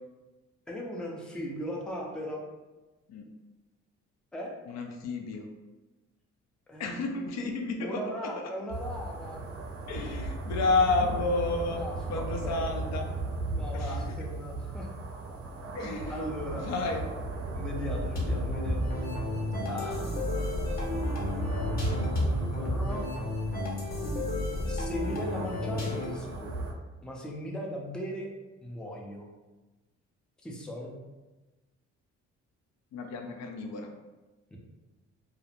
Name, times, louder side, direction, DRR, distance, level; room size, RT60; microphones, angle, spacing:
voice 1, 0.7-2.4 4.3-4.5 6.7-7.5 7.8-9.4 11.7-12.9 13.5-14.9 15.8-16.7 17.5-19.0 19.6-20.1 22.0-23.0 24.7-26.5 27.0-28.3 28.6-29.3 30.4-30.9 34.5-34.6, equal, 5° left, -1 dB, 0.4 m, -38 dB
voice 2, 4.7-5.5 6.8-8.4 9.9-11.8 12.1-13.1 13.7-14.0 15.7-16.3 16.5-17.0 32.9-33.9, left 3 dB, 65° left, 3 dB, 0.4 m, -31 dB
sound 1, 8.7-26.7, right 2 dB, 50° right, 0.5 m, -36 dB
sound 2, 18.2-26.3, left 1 dB, 30° left, 0.7 m, -32 dB
2.4 x 2.0 x 2.9 m, 1.1 s
cardioid pair, 90°, 30 cm